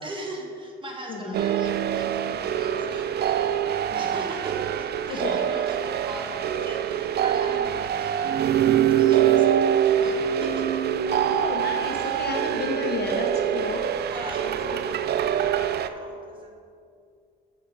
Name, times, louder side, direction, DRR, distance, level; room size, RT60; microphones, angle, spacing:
voice 1, 0.0-8.5 9.0-10.7 12.2-12.3 14.1-16.5, right 1 dB, 25° right, -1 dB, 1.7 m, -40 dB
sound 1, 1.3-15.9, right 10 dB, 55° right, 0.4 m, -24 dB
voice 2, 5.1-5.6 11.1-13.8 14.4-14.5, left 3 dB, 55° left, 3 dB, 1.1 m, -32 dB
6.5 x 5.6 x 6.9 m, 2.4 s
cardioid pair, 90°, 20 cm